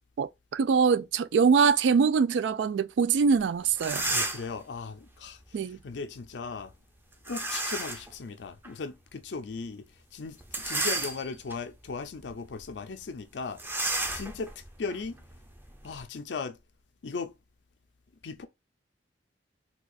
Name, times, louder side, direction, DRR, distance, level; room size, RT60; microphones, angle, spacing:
voice 1, 0.2-4.1 5.5-5.8, right 5 dB, 85° right, 0.3 m, -23 dB
sound 1, 3.4-3.5 3.7-4.6 7.3-8.1 8.6-8.7 10.4-11.5 12.1-12.3 12.6-12.7 13.6-16.0, right 2 dB, 10° right, 0.5 m, -32 dB
voice 2, 4.1-6.7 7.3-9.8 10.1-15.2 15.8-16.6 17.0-17.3 18.2-18.5, left 4 dB, 80° left, 0.5 m, -38 dB
4.3 x 2.3 x 2.5 m
head